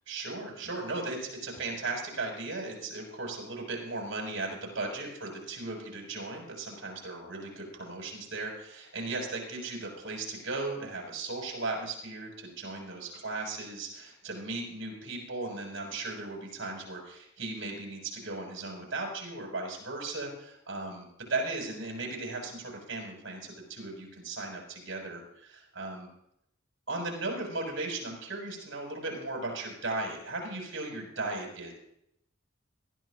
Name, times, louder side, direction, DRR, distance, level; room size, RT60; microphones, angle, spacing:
voice 1, 0.1-26.1 26.9-31.7, right 2 dB, 70° right, -1 dB, 6.3 m, -37 dB
21.5 x 13.5 x 2.6 m, 0.77 s
head